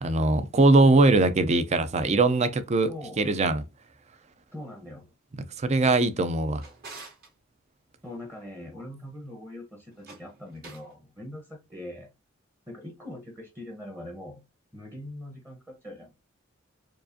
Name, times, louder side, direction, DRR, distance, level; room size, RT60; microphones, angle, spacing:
voice 1, 0.0-2.9 3.2-3.6 5.4-6.6, right 2 dB, 35° right, 0.5 m, -21 dB
voice 2, 2.9-3.2 4.5-5.1 8.0-12.1 12.7-14.4 14.7-16.1, left 1 dB, 15° right, 0.9 m, -42 dB
Drawer open or close, 6.1-7.3 9.9-10.9, right 3 dB, 50° right, 1.8 m, -48 dB
4.6 x 2.5 x 2.6 m
head